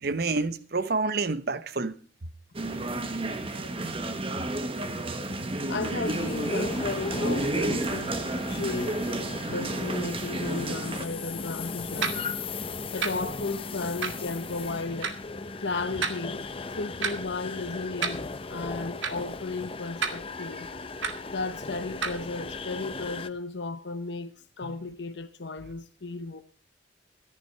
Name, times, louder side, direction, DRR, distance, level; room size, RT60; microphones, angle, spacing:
voice 1, 0.0-1.9 5.3-5.5 24.6-24.7, right 3 dB, 55° right, 0.9 m, -29 dB
sound 1, 2.5-11.0, right 2 dB, 30° right, 1.2 m, -31 dB
voice 2, 5.7-12.2 12.9-15.2 15.6-16.5 16.8-18.2 18.5-20.7 21.3-26.4, left 3 dB, 65° left, 0.9 m, -34 dB
sound 2, 6.0-23.3, left 4 dB, 30° left, 0.7 m, -37 dB
sound 3, 12.0-12.2 13.0-13.1 14.0-14.2 15.0-15.1 16.0-16.2 17.0-17.1 18.0-18.2 19.0-19.1 20.0-20.1 21.0-21.1 22.0-22.2, right 6 dB, 80° right, 1.9 m, -28 dB
13.5 x 11.0 x 4.6 m
head